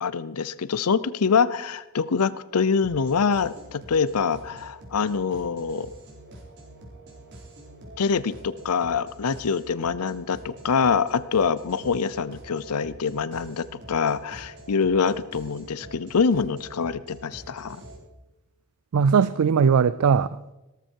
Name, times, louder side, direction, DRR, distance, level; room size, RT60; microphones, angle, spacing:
voice 1, 0.0-5.9 8.0-17.8, left 5 dB, 90° left, 17 dB, 0.6 m, -25 dB
sound 1, 2.8-18.0, right 1 dB, 50° right, 4.3 m, -46 dB
voice 2, 18.9-20.5, right 6 dB, 80° right, 17 dB, 0.4 m, -20 dB
17.5 x 14.0 x 4.6 m, 1.0 s
head